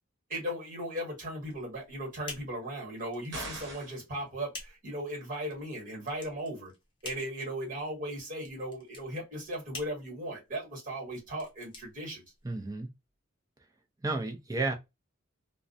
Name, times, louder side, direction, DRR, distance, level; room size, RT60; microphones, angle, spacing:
voice 1, 0.3-6.7 7.0-12.2, right 1 dB, 40° right, 1.4 m, -37 dB
sound 1, 1.4-12.7, left 3 dB, 25° left, 0.7 m, -49 dB
sound 2, 3.3-4.0, right 1 dB, 60° right, 1.1 m, -40 dB
voice 2, 12.4-12.9 14.0-14.7, right 3 dB, 15° right, 0.5 m, -32 dB
2.4 x 2.1 x 2.5 m
head